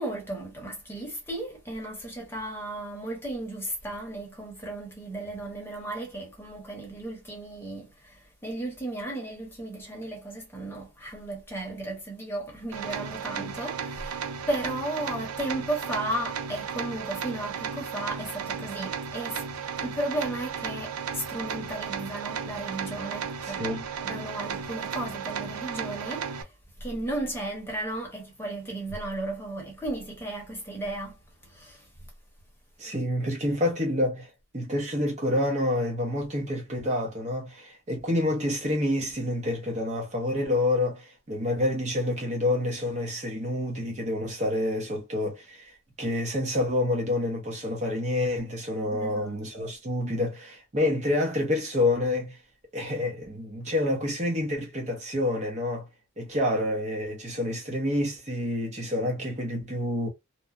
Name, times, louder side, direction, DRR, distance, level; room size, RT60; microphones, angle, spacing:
voice 1, 0.0-19.4 19.8-26.5 26.8-31.2 31.4-31.9 48.9-49.7, right 1 dB, 10° left, 0.9 m, -35 dB
sound 1, 12.7-26.4, right 6 dB, 90° right, 0.5 m, -34 dB
voice 2, 23.4-23.8 32.8-52.4 52.7-55.9 56.2-60.1, left 1 dB, 30° right, 0.7 m, -28 dB
2.9 x 2.0 x 2.4 m
head